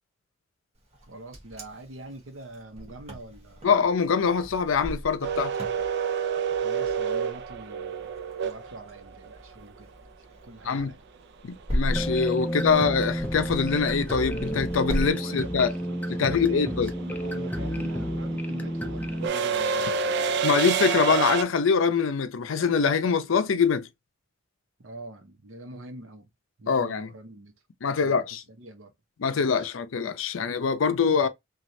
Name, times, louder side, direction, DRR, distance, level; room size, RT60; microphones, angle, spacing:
Wind, 0.9-15.1, equal, 30° right, 0.9 m, -37 dB
voice 1, 1.0-3.7 6.6-8.1 8.4-9.9 10.4-11.0 15.0-20.1 24.8-26.3 26.6-27.5 27.9-28.9 29.3-29.7, right 1 dB, 75° right, 0.9 m, -44 dB
voice 2, 3.6-5.5 10.7-10.9 11.4-15.7 16.2-16.9 20.4-23.9 26.7-27.1 27.8-28.4 29.2-31.3, left 5 dB, 75° left, 0.5 m, -24 dB
sound 1, 5.2-9.3 11.7-11.8 13.1-13.4 13.7-21.4, right 6 dB, 60° right, 0.4 m, -28 dB
sound 2, 11.9-19.3, equal, 10° left, 0.4 m, -31 dB
3.1 x 2.4 x 2.5 m
head